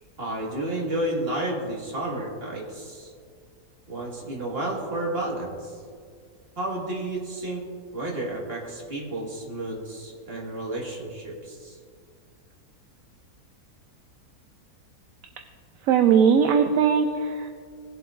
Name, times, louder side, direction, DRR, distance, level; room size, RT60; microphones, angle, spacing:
voice 1, 0.2-3.1 3.9-5.7 6.6-7.7 7.9-11.8, right 1 dB, 35° right, -3 dB, 2.0 m, -31 dB
voice 2, 15.8-17.5, right 7 dB, 70° right, 5 dB, 0.9 m, -19 dB
18.0 x 7.7 x 2.5 m, 2.1 s
omnidirectional pair, 1.7 m